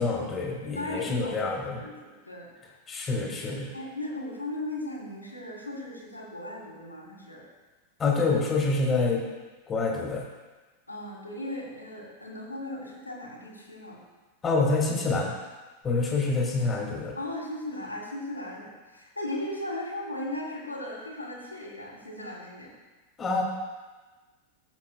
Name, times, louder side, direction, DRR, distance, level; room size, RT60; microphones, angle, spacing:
voice 1, 0.0-1.8 2.9-3.7 8.0-9.2 9.7-10.2 14.4-15.3 15.8-17.1 23.2-23.4, left 3 dB, 20° left, -1 dB, 1.8 m, -26 dB
voice 2, 0.8-2.5 3.7-7.4 10.9-14.0 17.2-22.7, left 1 dB, 85° left, -3 dB, 1.9 m, -37 dB
14.5 x 7.2 x 2.3 m, 1.2 s
figure-of-eight pair, 90°, 0 cm